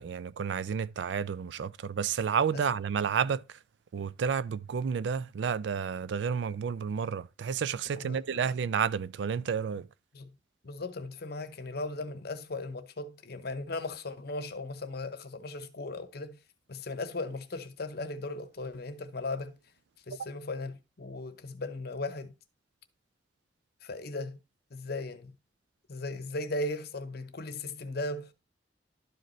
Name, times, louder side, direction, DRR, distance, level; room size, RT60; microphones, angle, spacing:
voice 1, 0.0-3.6 3.9-9.9, right 7 dB, 75° right, 0.4 m, -31 dB
voice 2, 7.9-8.4 10.1-10.3 10.6-16.4 16.7-19.6 20.1-22.3 23.8-24.4 24.7-25.3 25.9-28.3, left 2 dB, 60° left, 0.8 m, -37 dB
12.0 x 5.1 x 3.0 m
head